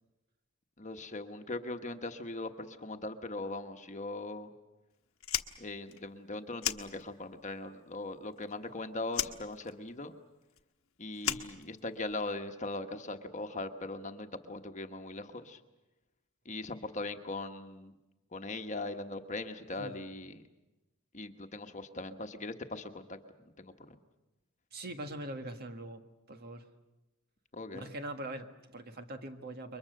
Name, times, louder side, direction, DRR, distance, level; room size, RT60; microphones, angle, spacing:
voice 1, 0.8-4.5 5.6-10.1 11.0-15.6 16.4-17.9 18.3-20.4 21.1-23.2 23.6-24.0 27.5-27.9, left 2 dB, 35° left, 6 dB, 1.3 m, -40 dB
Fire, 5.2-7.5 7.7-8.7 9.1-12.3, left 11 dB, 70° left, 1.3 m, -37 dB
voice 2, 24.7-26.7 27.7-29.8, right 1 dB, 45° right, 6 dB, 1.7 m, -42 dB
29.0 x 23.0 x 6.7 m, 1.0 s
head